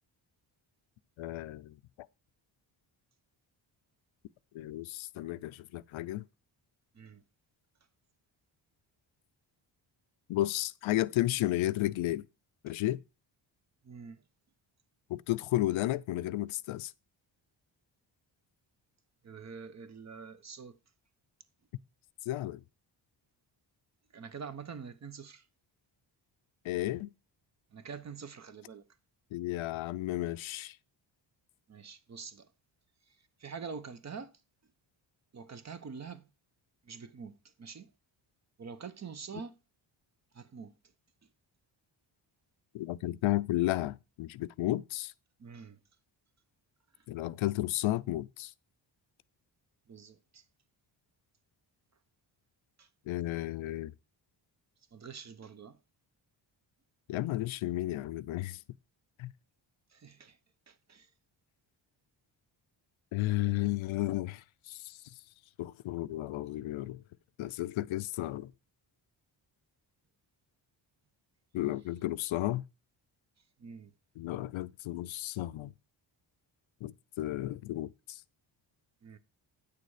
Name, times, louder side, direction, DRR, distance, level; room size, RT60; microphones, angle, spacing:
voice 1, 1.2-1.7 4.5-6.2 10.3-12.2 12.6-13.0 15.1-16.9 22.3-22.6 26.6-27.1 29.3-30.7 42.7-45.1 47.1-48.5 53.1-53.9 57.1-58.6 59.2-59.3 63.1-65.0 65.6-67.0 67.4-68.5 71.5-72.6 74.2-75.7 76.8-78.2, left 16 dB, 80° left, 0.5 m, -33 dB
voice 2, 13.8-14.2 19.2-20.8 24.1-25.5 27.7-28.8 31.7-32.5 33.1-34.3 35.3-36.3 36.8-37.9 38.6-39.6 40.3-40.7 45.4-45.8 49.9-50.4 52.8-52.9 54.9-55.8 59.9-60.4 60.7-61.1 73.6-73.9 79.0-79.2, right 6 dB, 35° right, 0.8 m, -46 dB
8.6 x 6.7 x 4.8 m
cardioid pair, 110°, 47 cm